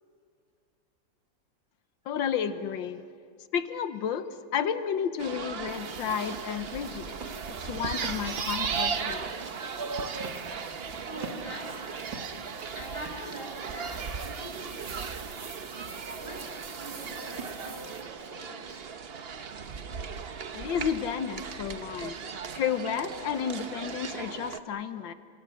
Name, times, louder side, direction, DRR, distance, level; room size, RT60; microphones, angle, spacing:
voice 1, 2.1-3.0 3.5-4.3 4.5-7.3 7.6-9.3 20.5-22.2 22.5-25.1, left 8 dB, 85° left, 10 dB, 1.7 m, -31 dB
sound 1, 5.2-24.6, right 6 dB, 45° right, 0.8 m, -37 dB
sound 2, 5.7-18.0, right 4 dB, 80° right, 3.4 m, -45 dB
voice 2, 11.0-11.9 12.7-15.0 16.1-18.9, equal, 25° right, 1 dB, 5.8 m, -44 dB
29.0 x 27.0 x 6.4 m, 2.3 s
omnidirectional pair, 2.0 m